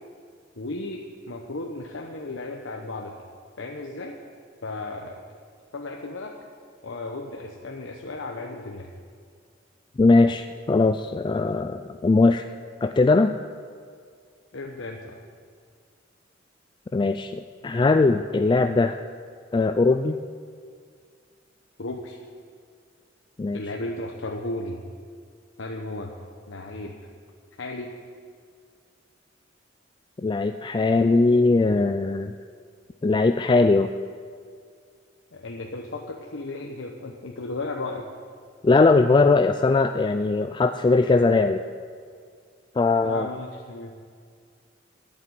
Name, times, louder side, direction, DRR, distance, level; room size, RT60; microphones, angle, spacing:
voice 1, 0.6-3.2 3.6-4.2 4.6-5.4 5.7-6.4 6.8-8.9 14.5-15.2 21.8-22.2 23.5-24.8 25.6-26.1 26.5-27.0 27.6-27.9 35.3-38.1 43.0-43.9, left 2 dB, 80° left, 1 dB, 0.9 m, -34 dB
voice 2, 10.0-12.5 12.8-13.3 16.9-19.0 19.5-20.2 23.4-23.6 30.2-32.3 33.0-33.9 38.6-41.6 42.8-43.3, left 3 dB, 25° left, 8 dB, 0.3 m, -20 dB
12.0 x 7.4 x 9.5 m, 2.1 s
head